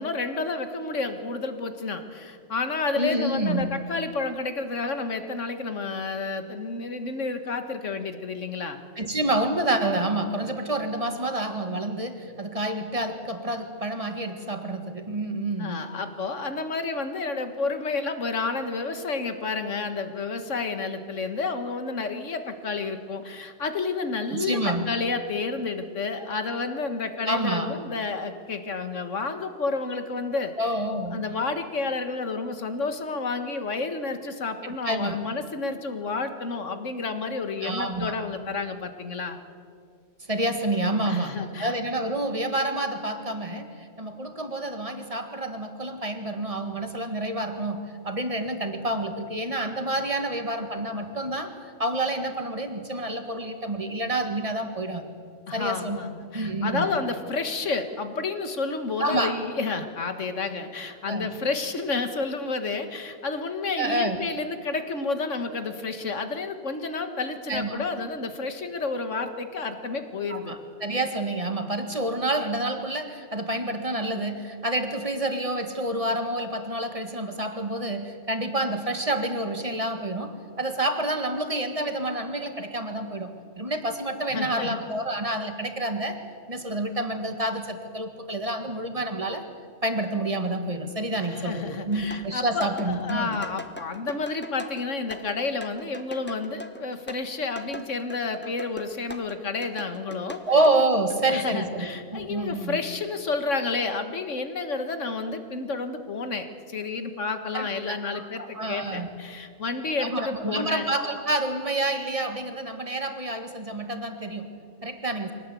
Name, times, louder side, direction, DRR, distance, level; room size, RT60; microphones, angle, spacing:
voice 1, 0.0-8.8 15.6-30.5 31.1-39.4 41.1-41.7 55.5-70.6 84.3-84.8 91.2-100.4 101.3-110.9, left 4 dB, 70° left, 8 dB, 1.9 m, -30 dB
voice 2, 2.9-3.7 9.0-15.9 24.3-24.8 27.3-27.7 30.6-31.2 34.6-35.2 37.6-38.2 40.3-51.5 51.8-55.1 55.5-56.0 56.3-56.9 59.0-59.3 61.0-61.3 63.8-64.2 67.5-67.8 70.3-86.2 86.5-89.4 89.8-93.4 100.5-102.8 107.5-109.1 110.0-115.3, right 1 dB, 25° right, 6 dB, 1.9 m, -28 dB
sound 1, 91.9-99.3 99.6-101.2, left 2 dB, 10° left, 1.0 m, -41 dB
24.0 x 18.5 x 8.4 m, 2.3 s
omnidirectional pair, 1.3 m